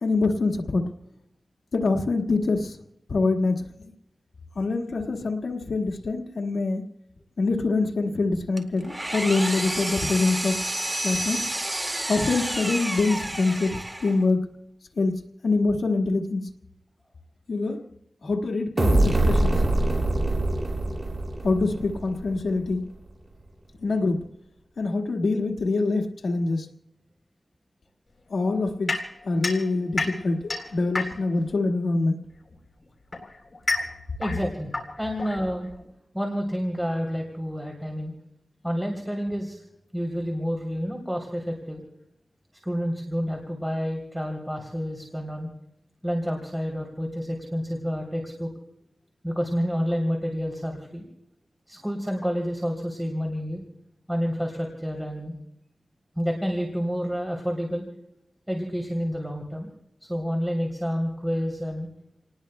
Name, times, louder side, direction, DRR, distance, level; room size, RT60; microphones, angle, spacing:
voice 1, 0.0-0.8 1.7-2.8 3.1-3.6 4.5-6.8 7.4-10.6 11.0-11.5 12.1-14.4 15.0-15.1 15.4-16.4 17.5-17.8 18.2-19.6 21.4-22.8 23.8-24.2 24.8-26.6 28.3-28.9 29.2-32.1, left 3 dB, 85° left, 3 dB, 1.6 m, -25 dB
Engine, 8.6-14.3, right 1 dB, 20° right, 1.9 m, -30 dB
sound 1, 18.8-22.4, right 1 dB, 40° right, 3.8 m, -23 dB
sound 2, 28.9-31.5 32.5-35.9, left 3 dB, 50° left, 3.5 m, -31 dB
voice 2, 34.2-34.7 35.0-35.7 36.1-38.1 38.6-39.6 39.9-41.8 42.6-45.5 46.0-48.5 49.2-51.0 51.7-53.6 54.1-55.3 56.2-57.8 58.5-59.7 60.0-61.9, equal, 5° right, 1 dB, 3.2 m, -29 dB
29.5 x 19.5 x 2.2 m, 0.85 s
wide cardioid pair, 65°, 0 cm